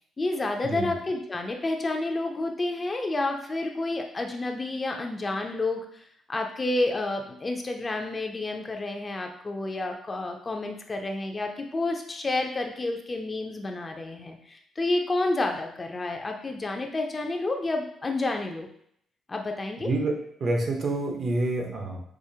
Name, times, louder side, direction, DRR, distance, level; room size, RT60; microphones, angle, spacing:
voice 1, 0.2-18.7 19.3-19.9, left 2 dB, 30° left, 3 dB, 0.4 m, -30 dB
voice 2, 19.8-20.1 20.4-22.0, right 2 dB, 50° right, 2 dB, 0.7 m, -27 dB
4.9 x 2.0 x 2.7 m, 0.68 s
cardioid pair, 90°, 0 cm